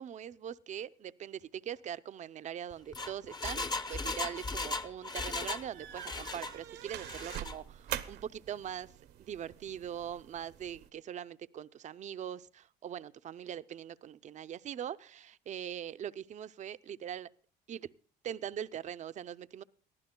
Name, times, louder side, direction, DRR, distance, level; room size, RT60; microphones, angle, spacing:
voice 1, 0.0-8.9 9.2-17.3 17.7-17.9 18.2-19.6, right 9 dB, 45° right, 15 dB, 0.5 m, -42 dB
Engine, 2.7-5.7 5.9-6.6 7.0-7.5 7.9-8.0, left 3 dB, 25° left, 0.7 m, -37 dB
sound 1, 5.7-10.9, right 11 dB, 70° right, 0.8 m, -44 dB
22.5 x 15.0 x 2.2 m, 0.43 s
cardioid pair, 110°, 17 cm